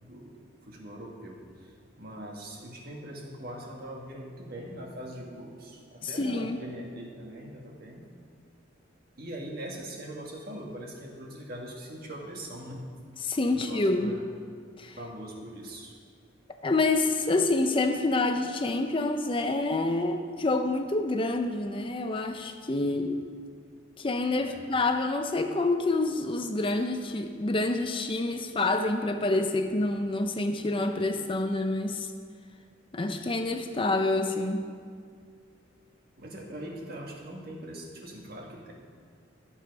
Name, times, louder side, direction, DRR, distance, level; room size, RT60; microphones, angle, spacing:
voice 1, 0.0-8.1 9.2-12.9 13.5-14.3 15.0-15.9 22.8-23.1 24.4-24.6 36.2-38.7, right 1 dB, 50° right, 0 dB, 1.7 m, -42 dB
voice 2, 6.0-6.6 13.2-14.2 14.8-15.0 16.6-23.2 24.0-32.1 32.9-34.7, left 2 dB, 25° left, 6 dB, 0.5 m, -27 dB
13.0 x 7.3 x 5.3 m, 2.1 s
head